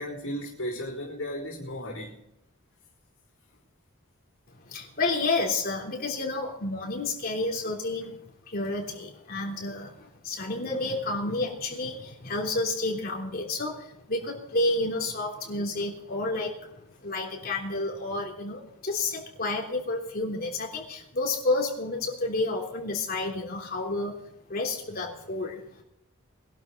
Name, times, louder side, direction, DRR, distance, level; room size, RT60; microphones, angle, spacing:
voice 1, 0.0-2.2, equal, 70° left, 4.1 m, -35 dB
voice 2, 4.5-8.2 8.5-24.2 24.5-25.8, left 2 dB, 45° left, 3.5 m, -30 dB
22.0 x 12.0 x 4.0 m
head